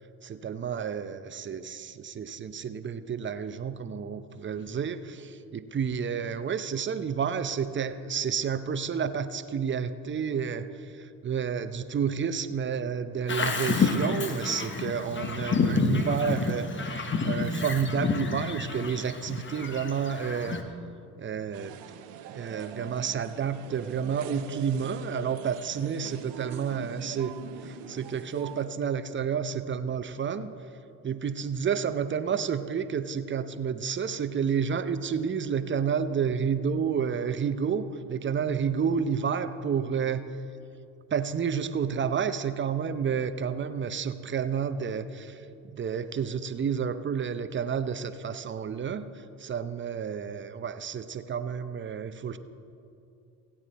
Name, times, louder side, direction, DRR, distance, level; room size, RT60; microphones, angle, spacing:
voice 1, 0.2-20.6 21.2-21.8 22.3-27.3 27.6-30.5 31.0-40.3 41.1-49.1 49.4-52.4, right 7 dB, 30° right, 11 dB, 0.7 m, -30 dB
Bird vocalization bird call bird song, 13.3-20.6, left 4 dB, 30° left, 1.2 m, -29 dB
sound 1, 21.5-28.7, right 8 dB, 75° right, 0.9 m, -43 dB
16.0 x 8.7 x 4.2 m, 2.6 s
hypercardioid pair, 65°, 41 cm